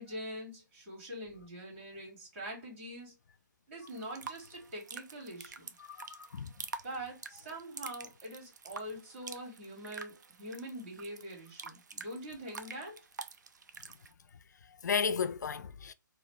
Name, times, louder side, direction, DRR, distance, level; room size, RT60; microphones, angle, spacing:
voice 1, 0.0-3.1 3.7-5.7 6.8-13.0, right 1 dB, 40° right, 2.6 m, -44 dB
sound 1, 3.9-14.1, right 5 dB, 60° right, 0.5 m, -48 dB
voice 2, 5.9-6.6 14.7-15.9, left 6 dB, 60° left, 0.4 m, -34 dB
4.0 x 2.7 x 3.4 m
figure-of-eight pair, 130°, 11 cm